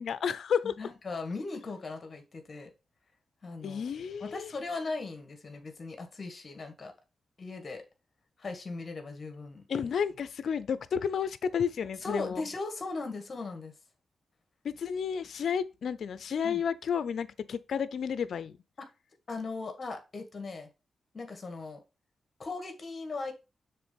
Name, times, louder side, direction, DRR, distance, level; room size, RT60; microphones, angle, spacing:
voice 1, 0.0-0.7 3.6-4.5 9.7-12.4 14.6-18.6, left 7 dB, 75° left, 0.6 m, -31 dB
voice 2, 0.8-2.7 3.4-3.8 4.2-6.9 7.4-7.8 8.4-9.6 12.0-13.7 16.4-16.6 18.8-18.9 19.3-20.7 21.1-21.8 22.4-23.3, left 3 dB, 45° left, 1.9 m, -38 dB
6.8 x 3.8 x 5.3 m
cardioid pair, 70°, 0 cm